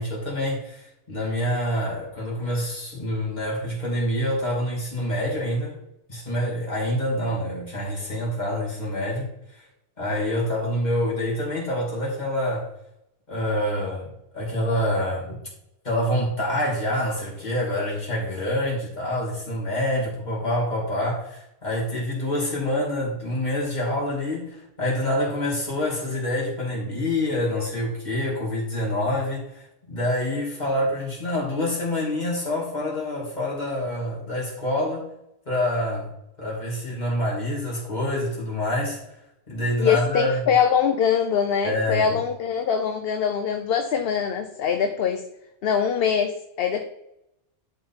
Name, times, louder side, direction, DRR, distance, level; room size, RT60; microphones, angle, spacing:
voice 1, 0.0-5.8 6.1-9.3 9.6-9.7 10.0-12.7 13.3-15.4 15.8-35.1 35.5-36.1 36.4-39.0 39.5-40.4 41.6-42.2, left 1 dB, 40° left, -4 dB, 2.9 m, -26 dB
voice 2, 39.8-45.2 45.6-46.8, left 7 dB, 60° left, 6 dB, 0.9 m, -23 dB
11.0 x 3.9 x 4.3 m, 0.82 s
omnidirectional pair, 1.2 m